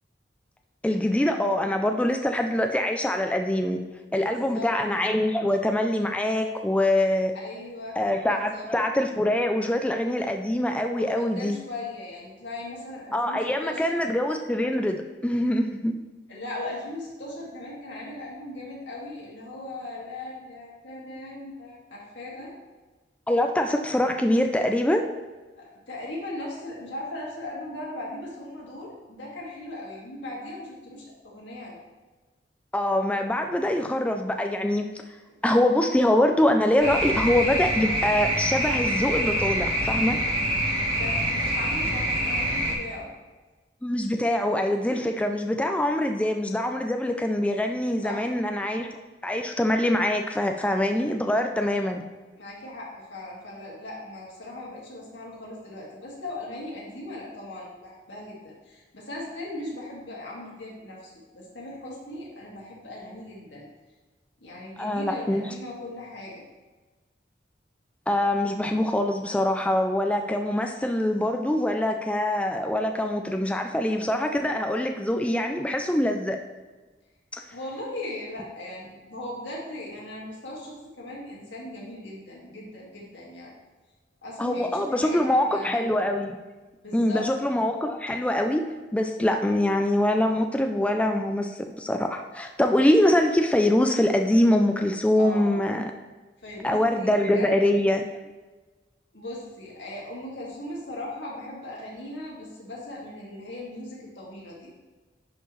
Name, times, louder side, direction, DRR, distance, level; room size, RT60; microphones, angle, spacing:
voice 1, 0.8-3.8 4.1-7.3 8.0-11.6 13.1-16.0 23.3-25.0 32.7-34.8 35.4-40.2 43.8-48.9 49.2-52.0 64.8-65.4 68.1-76.4 77.3-77.4 84.4-86.4 86.9-88.6 88.9-95.9 96.6-98.1, left 1 dB, 5° left, 4 dB, 0.4 m, -24 dB
voice 2, 4.3-4.7 7.3-8.0 8.3-8.7 10.9-14.0 16.3-22.5 25.6-31.8 41.0-43.1 48.0-48.2 52.4-63.7 64.4-66.4 77.5-83.5 84.2-85.8 86.8-87.3 95.1-95.7 96.4-97.6 99.1-104.7, left 1 dB, 85° left, -4 dB, 2.1 m, -38 dB
sound 1, 36.8-42.7, right 1 dB, 55° right, 2.1 m, -26 dB
10.5 x 4.5 x 3.2 m, 1.2 s
head